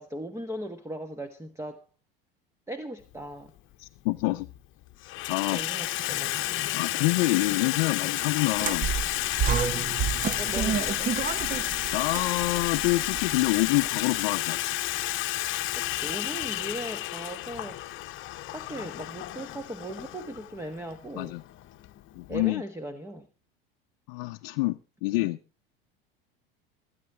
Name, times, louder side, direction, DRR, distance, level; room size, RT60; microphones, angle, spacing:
voice 1, 0.0-1.8 2.7-3.5 5.5-6.5 9.7-11.1 15.7-18.1 18.4-21.4 22.3-23.3 25.1-25.3, right 1 dB, 10° right, 1.3 m, -38 dB
Water tap faucet / Sink (filling or washing), 3.1-3.2 4.2-4.6 4.9-22.5, left 15 dB, 45° left, 1.0 m, -31 dB
voice 2, 3.8-4.5 5.3-5.9 6.7-8.9 11.9-14.6 21.2-21.4 22.2-22.6 24.1-25.4, left 21 dB, 65° left, 0.7 m, -27 dB
sound 1, 8.6-13.8, right 7 dB, 30° right, 1.0 m, -30 dB
22.5 x 9.9 x 3.4 m
hypercardioid pair, 85°, 29 cm